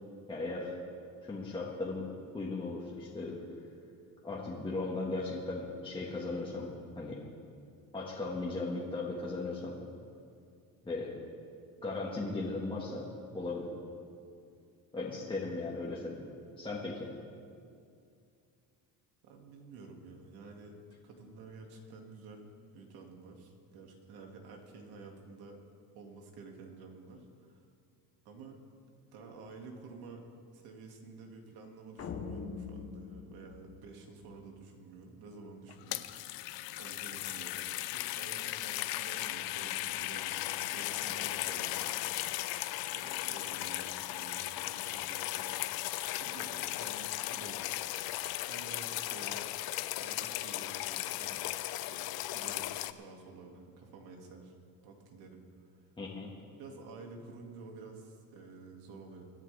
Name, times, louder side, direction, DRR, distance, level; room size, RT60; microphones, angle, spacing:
voice 1, 0.3-0.8 1.2-2.1 2.3-3.4 4.2-6.7 7.0-7.2 7.9-9.8 10.8-11.1 11.8-13.1 13.3-13.7 14.9-16.2 16.6-17.1 56.0-56.3, left 3 dB, 15° left, -5 dB, 1.7 m, -37 dB
voice 2, 19.2-20.8 21.0-22.5 22.7-25.6 25.9-27.6 28.2-28.6 29.1-30.2 30.5-36.0 36.8-37.6 37.9-42.3 42.7-45.6 46.2-47.7 48.5-49.4 49.9-51.4 51.9-54.6 54.8-55.8 56.5-59.2, right 3 dB, 80° right, 2 dB, 2.3 m, -50 dB
sound 1, 32.0-34.4, left 5 dB, 40° left, 1.1 m, -43 dB
sound 2, 35.7-52.9, left 15 dB, 75° left, 0.6 m, -37 dB
24.5 x 11.0 x 3.5 m, 2.4 s
cardioid pair, 130°, 37 cm